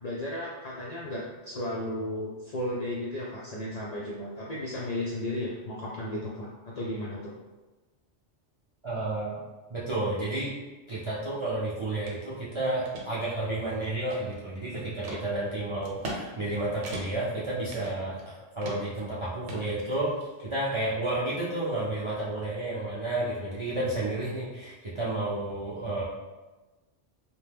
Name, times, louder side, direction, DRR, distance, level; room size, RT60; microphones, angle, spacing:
voice 1, 0.0-6.5 6.7-7.3, left 1 dB, 65° left, -5 dB, 0.4 m, -34 dB
voice 2, 8.8-9.4 9.7-10.5 10.9-20.1 20.4-26.0, right 2 dB, 50° right, -9 dB, 0.3 m, -31 dB
sound 1, 12.1-12.2 12.6-13.1 13.6-14.5 15.0-15.2 15.8-16.2 16.5-16.6 16.8-17.3 17.7-18.3 18.6-19.0 19.5-20.3, right 1 dB, 80° right, 0.9 m, -39 dB
2.8 x 2.1 x 3.3 m, 1.2 s
omnidirectional pair, 1.2 m